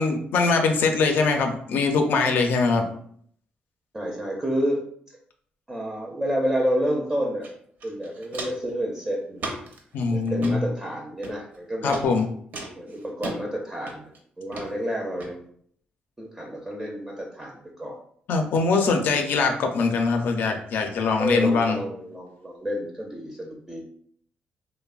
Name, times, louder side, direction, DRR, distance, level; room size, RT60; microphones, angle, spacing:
voice 1, 0.0-2.9 9.9-10.6 11.8-12.3 18.3-21.8, left 4 dB, 75° left, 4 dB, 0.4 m, -22 dB
voice 2, 3.9-4.8 5.7-9.6 10.1-12.0 12.7-14.1 14.4-15.5 16.2-18.0 21.2-23.8, equal, 15° right, -1 dB, 0.4 m, -29 dB
Walk footsteps, 7.4-7.5 7.8-8.7 9.4-9.8 10.3-10.6 11.2-11.6 11.9-12.1 12.5-13.4 13.9-14.2 14.5-14.7 15.2-15.3, right 2 dB, 60° right, 0.6 m, -35 dB
3.0 x 2.0 x 2.3 m, 0.63 s
cardioid pair, 105°, 3 cm